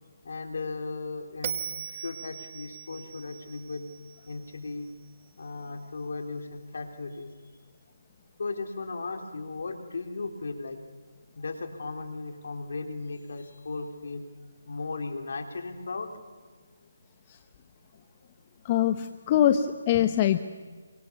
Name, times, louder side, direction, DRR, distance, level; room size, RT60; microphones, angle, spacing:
voice 1, 0.2-3.8 4.2-4.9 5.4-7.3 8.4-10.8 11.3-14.2 14.7-16.1, left 3 dB, 65° left, 5 dB, 4.0 m, -36 dB
Bell, 1.4-4.7, right 8 dB, 35° right, 1.9 m, -39 dB
voice 2, 18.6-20.4, left 10 dB, 25° left, 9 dB, 0.9 m, -23 dB
28.5 x 25.0 x 7.1 m, 1.5 s
figure-of-eight pair, 160°, 0 cm